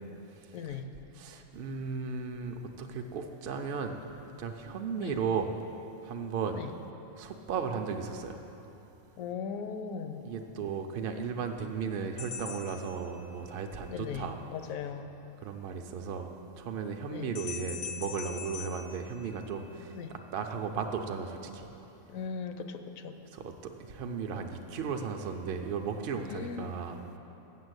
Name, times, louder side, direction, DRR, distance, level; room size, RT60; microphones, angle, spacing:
voice 1, 0.5-0.9 5.0-5.2 6.5-6.7 9.2-10.2 13.9-15.1 17.1-17.3 20.0-20.1 22.1-23.1 26.2-26.7, left 6 dB, 80° left, 8 dB, 1.0 m, -38 dB
voice 2, 1.1-4.0 4.4-5.5 6.0-6.6 7.2-8.4 10.2-14.4 15.4-21.7 23.3-27.2, right 5 dB, 55° right, 5 dB, 0.6 m, -35 dB
sound 1, 12.2-13.7 17.3-19.9, left 7 dB, 60° left, 0.5 m, -43 dB
7.6 x 6.6 x 8.0 m, 3.0 s
omnidirectional pair, 1.4 m